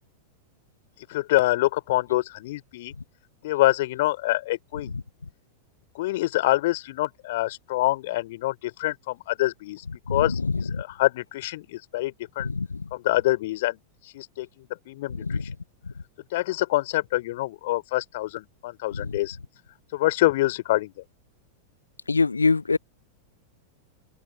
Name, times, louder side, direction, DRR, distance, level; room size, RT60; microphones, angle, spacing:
voice 1, 1.1-2.9 3.4-4.9 5.9-9.8 10.1-12.5 12.9-13.8 14.1-15.4 16.3-19.4 19.9-20.9, left 17 dB, 55° left, 4.1 m, -26 dB
voice 2, 22.1-22.8, left 4 dB, 80° left, 0.6 m, -23 dB
open air
figure-of-eight pair, 90°, 0 cm